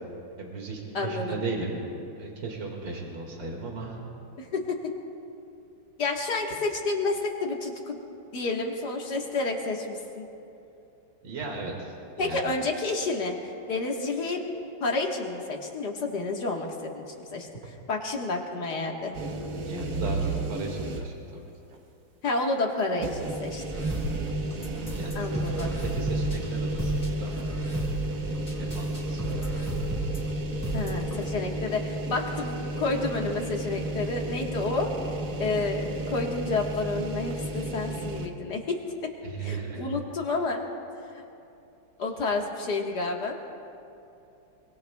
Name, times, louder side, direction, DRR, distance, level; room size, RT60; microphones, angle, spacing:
voice 1, 0.4-4.0 11.2-12.6 19.6-21.4 24.9-27.4 28.6-29.6 39.2-39.9, right 3 dB, 70° right, -1 dB, 2.8 m, -36 dB
voice 2, 0.9-1.4 4.4-4.8 6.0-8.0 8.3-10.3 12.2-13.4 13.7-14.4 14.8-17.0 17.3-19.2 22.2-23.6 25.2-25.8 30.7-34.9 35.4-38.8 39.4-40.6 41.1-41.2 42.0-43.4, left 3 dB, 60° left, 0 dB, 2.1 m, -30 dB
sound 1, 19.1-21.3 21.7-21.8 23.0-38.3, right 1 dB, 50° right, 1.4 m, -32 dB
sound 2, 23.7-31.3, right 1 dB, 10° right, 2.6 m, -34 dB
25.0 x 24.0 x 2.3 m, 2.8 s
omnidirectional pair, 2.1 m